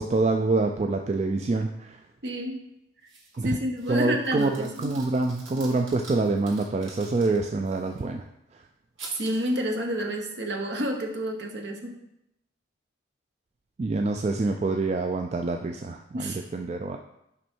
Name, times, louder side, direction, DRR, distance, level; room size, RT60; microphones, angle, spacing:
voice 1, 0.0-2.0 3.4-3.6 3.9-8.2 13.8-17.0, right 3 dB, 35° right, 4 dB, 0.3 m, -26 dB
voice 2, 2.2-2.6 3.4-4.9 9.1-12.0 16.1-16.4, equal, 60° right, 2 dB, 1.0 m, -29 dB
sound 1, 3.1-3.4 3.8-8.0 9.0-9.6, right 3 dB, 80° right, 2.1 m, -46 dB
6.2 x 5.3 x 4.4 m, 0.82 s
head